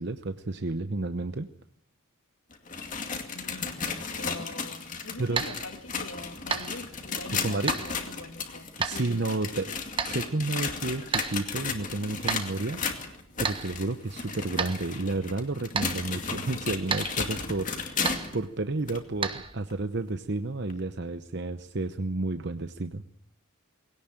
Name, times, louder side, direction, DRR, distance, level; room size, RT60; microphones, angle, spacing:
voice 1, 0.0-1.5 5.2-5.5 7.4-7.7 8.8-9.7 10.0-13.1 13.4-23.0, right 2 dB, 55° right, 9 dB, 0.9 m, -31 dB
sound 1, 2.5-18.4 18.9-19.0 19.7-19.8 20.7-20.8, left 5 dB, 40° left, 2.4 m, -34 dB
voice 2, 3.3-3.8 4.1-9.1, left 2 dB, 70° left, 7 dB, 2.1 m, -43 dB
sound 2, 4.9-19.6, right 5 dB, 25° right, 1.3 m, -36 dB
21.0 x 17.5 x 9.0 m, 0.68 s
head